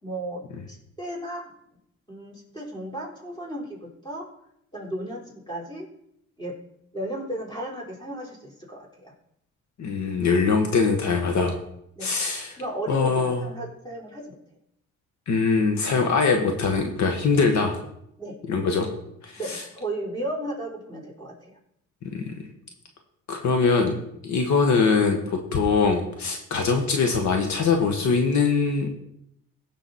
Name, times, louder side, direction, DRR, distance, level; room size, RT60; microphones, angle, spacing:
voice 1, 0.0-1.5 2.1-4.3 4.7-5.9 6.4-6.5 6.9-9.1 12.0-12.1 12.6-14.4 18.2-18.4 19.4-21.6, right 1 dB, 15° left, -2 dB, 4.3 m, -34 dB
voice 2, 9.8-11.5 12.0-12.6 12.9-13.4 15.3-17.7 18.5-18.9 19.5-19.6 22.0-22.3 23.3-23.9 24.2-28.9, left 4 dB, 70° left, 4 dB, 1.6 m, -22 dB
16.0 x 6.4 x 4.2 m, 0.75 s
cardioid pair, 90°, 30 cm